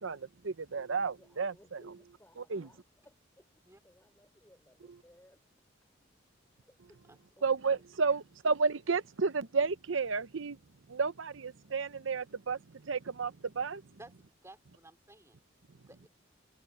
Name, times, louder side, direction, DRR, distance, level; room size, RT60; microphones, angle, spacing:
voice 1, 0.0-1.8 2.5-2.7 7.4-10.6 10.9-13.8, right 4 dB, 70° right, 0.8 m, -32 dB
voice 2, 0.9-5.4 6.5-7.8, left 1 dB, 10° left, 5.5 m, -63 dB
voice 3, 7.1-7.5 14.0-15.4 15.9-16.1, right 2 dB, 15° right, 3.8 m, -55 dB
head